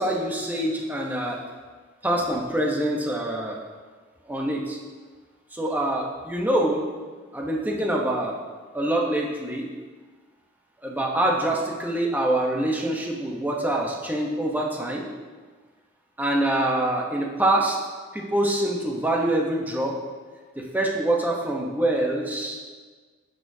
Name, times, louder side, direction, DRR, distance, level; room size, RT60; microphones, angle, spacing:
voice 1, 0.0-1.4 2.0-3.6 4.2-4.8 5.5-6.8 7.3-8.4 8.7-9.7 10.8-15.1 16.2-17.8 18.1-20.0 20.6-22.6, right 1 dB, 10° right, -1 dB, 0.9 m, -25 dB
10.5 x 6.6 x 2.7 m, 1.4 s
head